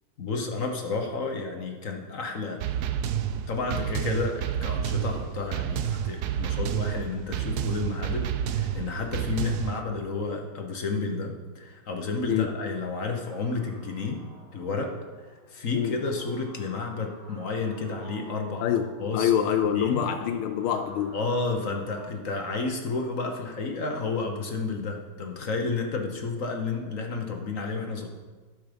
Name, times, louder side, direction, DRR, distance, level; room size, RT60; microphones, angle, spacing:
voice 1, 0.2-2.6 3.5-14.2 14.5-14.9 15.2-18.7 19.0-20.0 21.1-28.1, left 4 dB, 45° left, 3 dB, 1.3 m, -31 dB
sound 1, 2.6-9.8, right 9 dB, 70° right, 0.9 m, -29 dB
sound 2, 12.3-22.1, equal, 20° right, 1.9 m, -53 dB
voice 2, 18.6-21.2, left 9 dB, 85° left, 8 dB, 1.5 m, -26 dB
12.5 x 7.4 x 5.2 m, 1.4 s
omnidirectional pair, 2.3 m